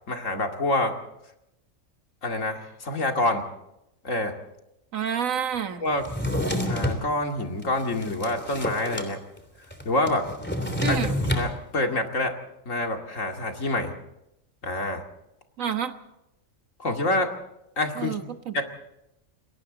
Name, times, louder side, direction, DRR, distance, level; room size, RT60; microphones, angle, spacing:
voice 1, 0.1-0.9 2.2-3.4 4.0-4.3 5.8-6.0 6.7-9.2 9.8-10.3 10.9-12.3 12.7-13.9 14.6-15.0 16.8-17.3 17.8-18.2 18.5-18.6, left 2 dB, 75° left, 3 dB, 2.6 m, -27 dB
voice 2, 4.9-5.8 10.8-11.2 15.6-15.9 18.0-18.6, right 8 dB, 85° right, 8 dB, 1.8 m, -29 dB
Drawer open or close, 6.0-7.0 7.6-9.1 9.4-9.5 9.7-11.5, left 1 dB, 10° left, 3.1 m, -28 dB
29.0 x 22.0 x 4.0 m, 0.86 s
omnidirectional pair, 1.4 m